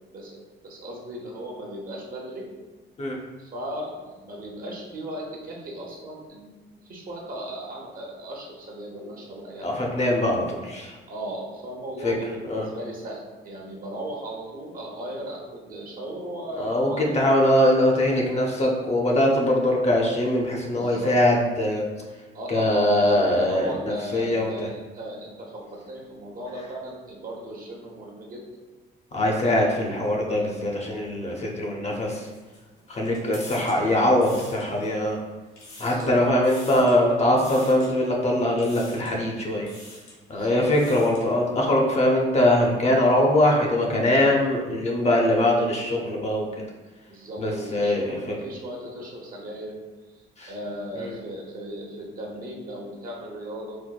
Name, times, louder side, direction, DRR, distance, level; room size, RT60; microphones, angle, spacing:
voice 1, 0.1-2.5 3.4-9.7 11.1-17.3 20.7-21.1 22.3-28.4 35.9-36.2 40.3-41.0 47.1-49.8 50.5-53.8, right 1 dB, 45° right, -3 dB, 0.8 m, -37 dB
voice 2, 9.6-11.0 12.0-12.1 12.5-12.7 16.6-21.8 22.5-24.7 29.1-32.3 32.9-35.2 35.8-39.7 40.3-46.5 47.4-48.2 50.4-50.5 51.0-51.2, left 1 dB, 35° left, -1 dB, 0.6 m, -22 dB
sound 1, 32.0-35.1 35.4-36.1 36.4-37.0 37.4-37.9 38.6-39.2 39.6-40.2 40.6-41.3, left 2 dB, 90° left, 1.0 m, -45 dB
4.4 x 2.0 x 2.3 m, 1.2 s
cardioid pair, 90°, 20 cm